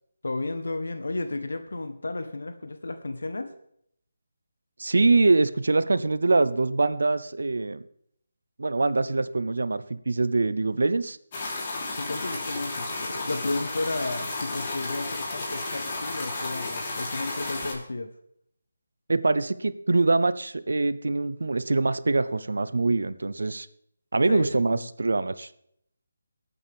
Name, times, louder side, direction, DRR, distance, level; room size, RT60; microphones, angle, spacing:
voice 1, 0.2-3.5 12.0-18.1 24.3-24.9, left 2 dB, 80° left, 9 dB, 1.1 m, -33 dB
voice 2, 4.8-7.8 8.6-11.2 19.1-23.7 24.1-25.5, right 3 dB, 75° right, 15 dB, 0.7 m, -24 dB
sound 1, 11.3-17.7, left 2 dB, 35° left, 3.4 m, -33 dB
20.0 x 8.7 x 3.5 m, 0.71 s
figure-of-eight pair, 160°, 0 cm